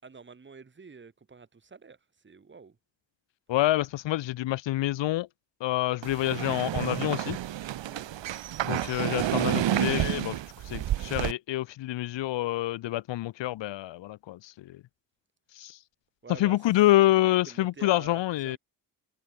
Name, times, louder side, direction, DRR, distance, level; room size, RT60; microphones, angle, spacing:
voice 1, 0.0-2.8 7.9-8.1 16.2-16.7 17.5-18.6, right 5 dB, 25° right, 5.4 m, -48 dB
voice 2, 3.5-5.3 5.6-7.4 8.6-10.4 10.6-14.8 15.5-15.8 16.4-18.6, left 15 dB, 90° left, 0.8 m, -27 dB
sound 1, 6.0-11.3, right 12 dB, 80° right, 1.8 m, -30 dB
wide cardioid pair, 175°, 43 cm